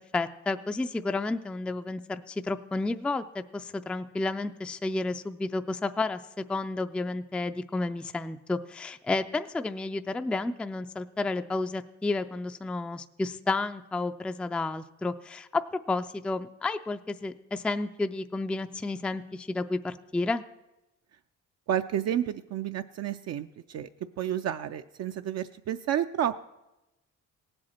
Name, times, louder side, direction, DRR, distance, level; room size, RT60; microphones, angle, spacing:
voice 1, 0.0-15.6 15.9-20.4, left 3 dB, 5° left, 9 dB, 0.3 m, -31 dB
voice 2, 21.7-23.9 24.2-26.4, right 10 dB, 60° right, 8 dB, 0.4 m, -30 dB
17.5 x 7.8 x 4.3 m, 0.98 s
cardioid pair, 90°, 30 cm